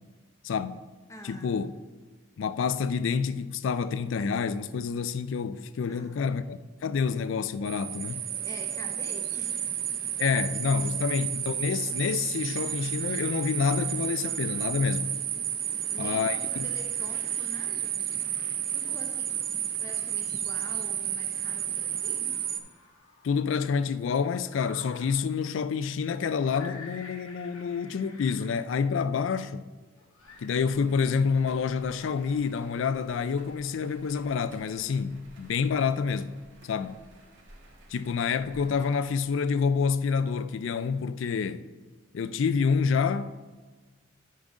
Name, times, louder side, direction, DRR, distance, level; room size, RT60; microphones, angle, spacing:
voice 1, 0.4-0.8 1.2-1.7 2.4-8.3 10.2-15.1 16.0-16.7 23.2-29.7 30.4-36.4 36.6-37.0 37.9-41.7 42.1-43.4, left 5 dB, 70° left, 0.3 m, -28 dB
voice 2, 1.1-1.7 5.9-6.3 8.4-9.8 11.0-11.1 14.6-15.0 15.8-18.1 18.7-19.4 19.8-22.4, left 1 dB, 15° left, 0.8 m, -47 dB
sound 1, 7.7-22.6, right 10 dB, 45° right, 0.5 m, -32 dB
sound 2, 13.0-13.1 13.4-14.7 15.8-20.6 21.4-23.5 24.4-25.2 26.3-28.6 30.0-30.5, left 3 dB, 90° left, 1.3 m, -51 dB
sound 3, 30.2-39.0, right 1 dB, 65° right, 1.7 m, -53 dB
9.1 x 3.9 x 5.0 m
head